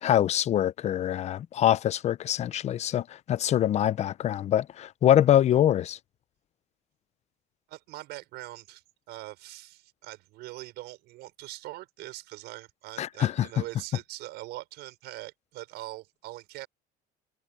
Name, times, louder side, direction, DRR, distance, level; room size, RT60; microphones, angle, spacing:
voice 1, 0.0-6.0 13.0-13.5, left 11 dB, 40° left, 0.6 m, -24 dB
voice 2, 7.7-16.7, right 18 dB, 75° right, 5.8 m, -42 dB
cardioid pair, 135°, 18 cm